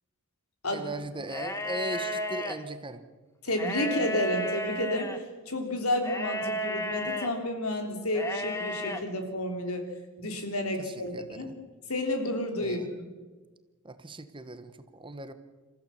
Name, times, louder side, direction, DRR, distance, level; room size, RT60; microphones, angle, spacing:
voice 1, 0.7-3.0 10.8-11.6 12.6-12.9 13.8-15.3, right 2 dB, 25° right, 10 dB, 1.2 m, -39 dB
sound 1, 1.3-2.6 3.5-5.2 6.0-7.3 8.1-9.0, equal, 15° left, 1.5 m, -33 dB
voice 2, 3.4-5.1 5.5-9.9 10.2-11.5 11.9-13.1, left 1 dB, 75° left, 5 dB, 3.5 m, -31 dB
27.0 x 15.0 x 7.2 m, 1.3 s
head